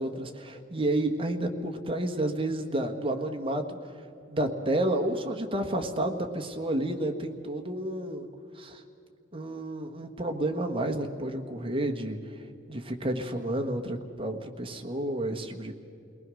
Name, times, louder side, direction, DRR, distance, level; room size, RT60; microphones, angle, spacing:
voice 1, 0.0-3.6 4.3-8.3 8.6-8.8 9.3-12.2 12.7-15.8, right 1 dB, 25° right, 3 dB, 1.4 m, -30 dB
29.0 x 19.5 x 6.3 m, 2.5 s
head